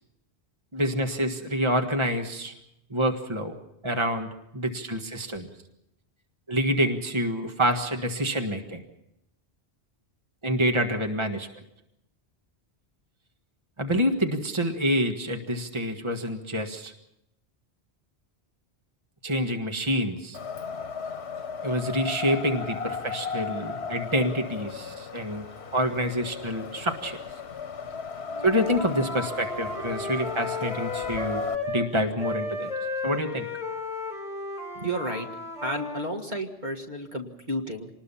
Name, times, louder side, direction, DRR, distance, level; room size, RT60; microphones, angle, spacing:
voice 1, 0.7-2.5 2.9-3.6 3.8-5.5 6.5-8.8 10.4-11.5 13.8-16.9 19.2-20.4 21.6-25.4 25.7-27.2 28.4-32.7 33.0-33.5, equal, 25° right, 4 dB, 1.7 m, -27 dB
Wind, 20.3-31.6, left 5 dB, 85° left, 1.4 m, -36 dB
Wind instrument woodwind instrument, 28.3-31.9 32.2-36.1, left 2 dB, 40° left, 5.1 m, -34 dB
voice 2, 34.7-35.3 35.6-37.9, right 1 dB, 45° right, 3 dB, 1.9 m, -32 dB
26.5 x 20.0 x 5.7 m, 0.81 s
omnidirectional pair, 1.1 m